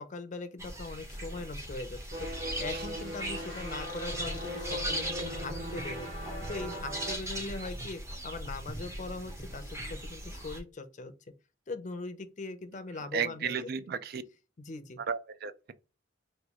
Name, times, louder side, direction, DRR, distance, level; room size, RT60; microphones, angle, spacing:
voice 1, 0.0-6.1 6.5-11.1 11.7-13.6 14.6-15.0, left 3 dB, 40° left, 0.5 m, -41 dB
sound 1, 0.6-10.6, right 1 dB, 15° right, 0.6 m, -39 dB
sound 2, 2.1-7.2, equal, 75° right, 1.4 m, -39 dB
voice 2, 13.1-14.2 15.1-15.7, right 7 dB, 55° right, 0.4 m, -34 dB
3.0 x 2.3 x 3.5 m
head